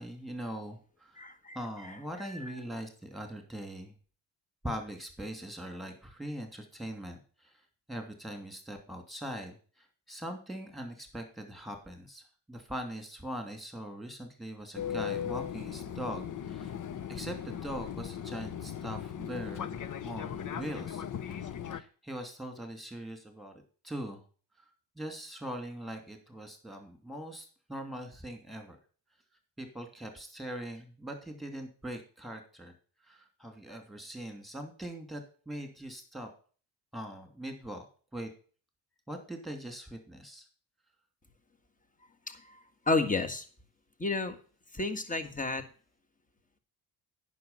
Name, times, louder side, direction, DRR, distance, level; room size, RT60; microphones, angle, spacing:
voice 1, 0.0-1.2 1.5-3.9 4.6-7.6 7.9-16.7 17.1-23.5 23.8-24.2 25.0-28.8 29.6-32.7 33.0-36.3 36.9-37.8 38.1-38.3 39.1-40.5, equal, ahead, 4 dB, 2.7 m, -41 dB
voice 2, 1.2-2.6 42.3-42.6 42.9-43.4 44.0-44.4 44.7-45.6, left 3 dB, 15° left, 7 dB, 1.6 m, -32 dB
Fixed-wing aircraft airplane, 14.8-21.8, left 9 dB, 45° left, 0.9 m, -38 dB
9.3 x 6.2 x 5.6 m, 0.40 s
supercardioid pair, 80°, 45 cm